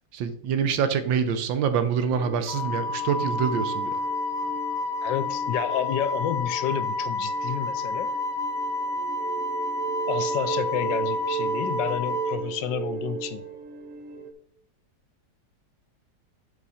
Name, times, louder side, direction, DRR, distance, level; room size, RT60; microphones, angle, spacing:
voice 1, 0.1-3.9, right 7 dB, 85° right, 10 dB, 1.5 m, -25 dB
sound 1, 2.1-14.3, right 7 dB, 65° right, 1.0 m, -36 dB
Wind instrument woodwind instrument, 2.5-12.4, left 2 dB, 30° left, 0.9 m, -29 dB
voice 2, 5.0-8.2 10.1-13.5, left 9 dB, 80° left, 11 dB, 1.3 m, -30 dB
8.1 x 5.2 x 4.2 m, 0.72 s
omnidirectional pair, 2.0 m